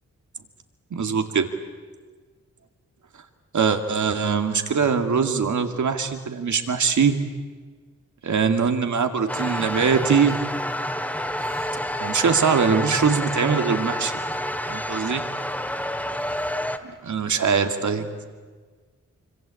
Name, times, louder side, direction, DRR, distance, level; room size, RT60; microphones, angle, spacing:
voice 1, 0.9-1.5 3.5-7.2 8.2-10.4 12.0-14.1 14.7-15.2 17.0-18.1, right 6 dB, 75° right, 6 dB, 2.4 m, -22 dB
sound 1, 9.3-16.8, left 1 dB, 5° left, 2.1 m, -29 dB
25.5 x 25.0 x 8.5 m, 1.5 s
cardioid pair, 65°, 30 cm